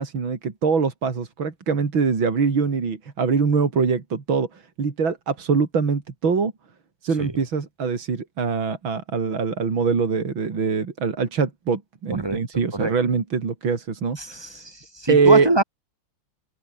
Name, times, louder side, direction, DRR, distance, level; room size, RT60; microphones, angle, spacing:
voice 1, 0.0-6.5 7.0-14.5 15.1-15.5, right 5 dB, 75° right, 3.8 m, -23 dB
voice 2, 14.2-15.6, right 2 dB, 10° right, 3.1 m, -24 dB
open air
omnidirectional pair, 2.2 m